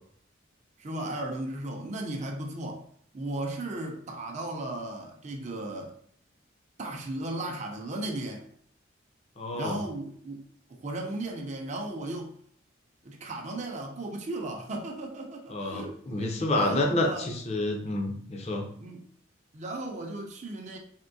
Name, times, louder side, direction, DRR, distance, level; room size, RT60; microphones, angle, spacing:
voice 1, 0.8-2.9 3.1-5.9 6.8-8.5 9.5-12.4 13.0-17.3 18.8-19.0 19.5-20.8, right 1 dB, 35° right, 0.5 m, -36 dB
voice 2, 9.4-9.8 15.5-18.7, left 2 dB, 30° left, 0.5 m, -29 dB
3.6 x 2.6 x 2.6 m
head